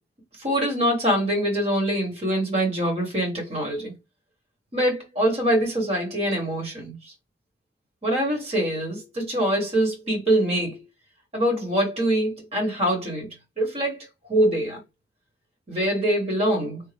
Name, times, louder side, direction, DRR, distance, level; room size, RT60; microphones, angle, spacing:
voice 1, 0.4-3.9 4.7-7.0 8.0-10.8 11.3-13.3 13.6-14.8 15.7-16.8, right 1 dB, 35° right, 1.4 m, -24 dB
3.6 x 2.1 x 3.3 m
head